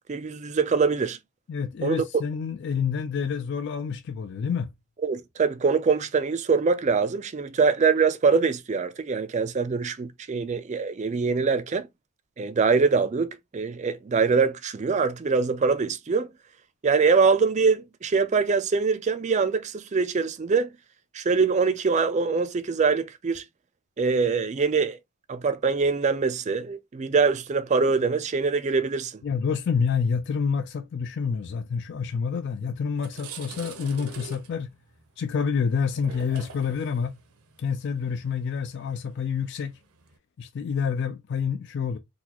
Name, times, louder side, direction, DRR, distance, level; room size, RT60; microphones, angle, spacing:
voice 1, 0.1-1.2 1.8-2.0 5.0-11.9 12.4-16.3 16.8-20.7 21.1-23.4 24.0-25.0 25.3-29.2, right 5 dB, 30° right, 0.3 m, -23 dB
voice 2, 1.5-4.7 29.2-34.7 35.2-37.1 37.6-39.7 40.4-42.0, left 6 dB, 50° left, 0.3 m, -28 dB
sound 1, 32.4-32.5 32.8-40.2, right 5 dB, 75° right, 0.7 m, -45 dB
4.0 x 2.2 x 2.9 m
head